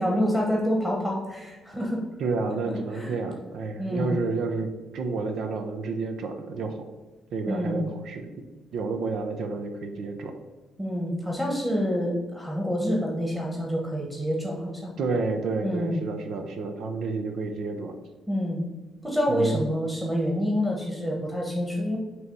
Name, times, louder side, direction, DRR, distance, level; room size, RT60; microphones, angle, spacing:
voice 1, 0.0-2.0 2.9-3.1 3.8-4.2 7.5-7.9 10.8-14.9 15.6-16.0 18.3-18.6 19.0-22.0, equal, 10° right, -2 dB, 1.3 m, -27 dB
voice 2, 2.2-6.7 7.3-8.3 8.7-10.3 15.0-17.9 19.3-19.6, right 4 dB, 70° right, 6 dB, 0.7 m, -30 dB
6.3 x 3.1 x 5.4 m, 1.2 s
cardioid pair, 90°, 0 cm